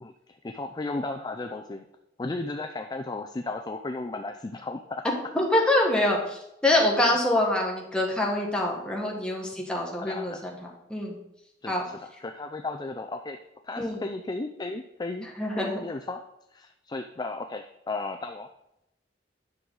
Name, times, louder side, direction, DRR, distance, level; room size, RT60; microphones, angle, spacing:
voice 1, 0.0-1.8 2.2-5.0 10.0-10.4 11.6-11.8 12.2-13.4 13.6-15.3 15.6-16.2 16.5-18.5, left 2 dB, 20° left, 6 dB, 0.4 m, -34 dB
voice 2, 5.0-11.2 11.7-11.8 13.8-14.1 15.4-15.8, left 1 dB, 5° left, -2 dB, 1.7 m, -25 dB
9.9 x 6.3 x 3.9 m, 0.85 s
head